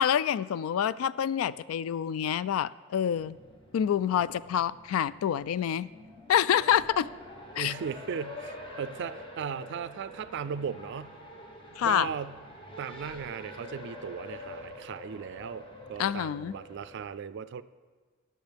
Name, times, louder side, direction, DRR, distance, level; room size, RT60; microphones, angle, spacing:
voice 1, 0.0-3.4 3.7-5.9 6.3-7.1 7.6-7.7 11.8-12.1 16.0-16.6, left 9 dB, 85° left, 17 dB, 0.3 m, -27 dB
Race car auto racing, 3.0-17.1, left 1 dB, 25° left, 1.2 m, -46 dB
voice 2, 7.6-11.2 11.8-12.3 12.8-17.6, right 7 dB, 60° right, 15 dB, 0.4 m, -37 dB
18.5 x 6.5 x 3.4 m, 1.5 s
head